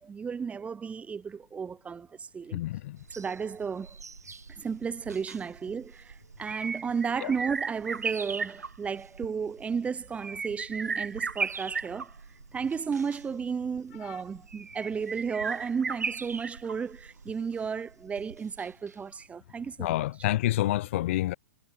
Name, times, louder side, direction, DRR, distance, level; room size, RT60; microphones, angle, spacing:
voice 1, 0.0-2.6 3.1-4.0 4.5-12.1 12.5-20.1, right 6 dB, 15° right, 5.8 m, -33 dB
voice 2, 2.5-3.0 7.2-7.3 19.8-21.3, left 15 dB, 50° left, 0.4 m, -28 dB
sound 1, 3.0-18.9 19.2-19.3, right 5 dB, 80° right, 6.5 m, -37 dB
figure-of-eight pair, 110°, 9 cm